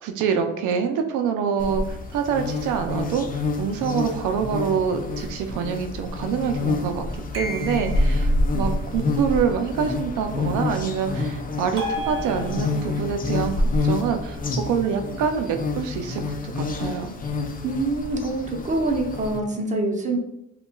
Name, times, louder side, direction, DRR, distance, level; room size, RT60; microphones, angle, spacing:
voice 1, 0.0-7.1 7.3-17.2, right 7 dB, 90° right, 5 dB, 0.5 m, -26 dB
sound 1, 1.6-19.4, left 2 dB, 30° left, 0.5 m, -27 dB
sound 2, 7.3-8.3 11.8-13.0, equal, 45° right, 1.0 m, -32 dB
voice 2, 17.6-20.2, right 2 dB, 25° right, 0 dB, 0.8 m, -25 dB
5.2 x 2.3 x 2.2 m, 0.86 s
cardioid pair, 90°, 30 cm